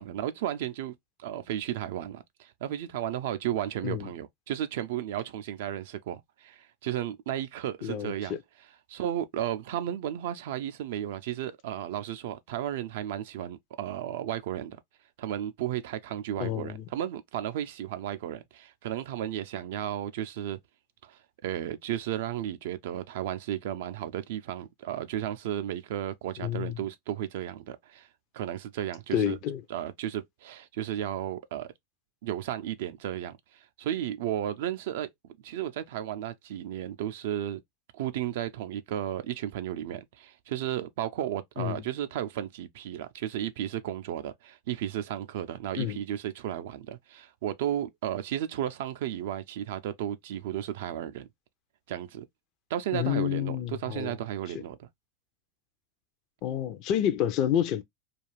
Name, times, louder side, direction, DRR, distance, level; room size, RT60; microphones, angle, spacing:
voice 1, 0.0-8.4 8.9-14.8 15.2-20.6 21.0-28.1 28.3-29.4 29.7-31.7 32.2-35.1 35.4-37.6 37.9-51.3 51.9-52.2 52.7-54.9, right 11 dB, 70° right, 0.4 m, -34 dB
voice 2, 7.8-8.4 16.4-16.8 26.4-26.7 29.1-29.6 41.6-41.8 45.7-46.0 52.9-54.1 56.4-57.8, left 10 dB, 55° left, 0.4 m, -29 dB
2.4 x 2.3 x 3.1 m
hypercardioid pair, 95°, 0 cm